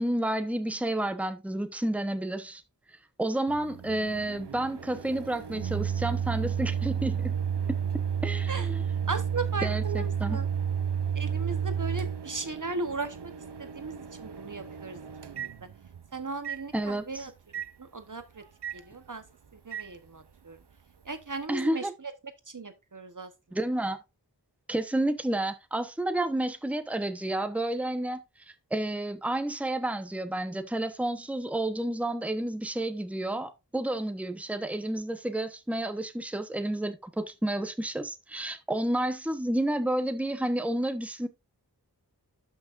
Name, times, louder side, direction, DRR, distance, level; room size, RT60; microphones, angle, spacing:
voice 1, 0.0-2.6 3.2-7.3 8.2-8.8 9.6-10.4 16.7-17.3 21.5-21.9 23.5-24.0 24.7-41.3, right 1 dB, 5° right, 0.9 m, -30 dB
Microwave oven, 3.5-16.0 16.4-16.6 17.5-17.7 18.6-18.8 19.7-19.9, right 8 dB, 90° right, 0.7 m, -32 dB
voice 2, 9.1-10.5 11.1-13.3 13.6-15.0 15.3-15.5 16.1-17.3 17.8-18.4 18.7-19.2 19.5-20.6 21.0-22.1 22.5-23.3, right 3 dB, 50° right, 1.0 m, -37 dB
12.0 x 5.9 x 2.5 m
wide cardioid pair, 55°, 40 cm